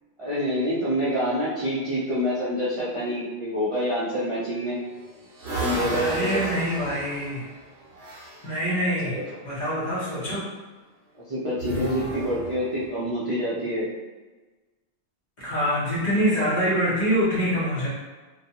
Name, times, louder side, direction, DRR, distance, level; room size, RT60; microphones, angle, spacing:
voice 1, 0.2-4.8 5.4-6.6 9.0-9.2 10.1-10.3 11.3-13.9, equal, 40° right, -11 dB, 0.5 m, -27 dB
sound 1, 4.6-8.5 11.5-13.0, right 1 dB, 70° right, 0.8 m, -34 dB
voice 2, 5.9-7.5 8.4-9.2 9.4-10.4 15.4-17.9, equal, 45° left, -8 dB, 0.8 m, -25 dB
2.3 x 2.3 x 2.7 m, 1.2 s
omnidirectional pair, 1.2 m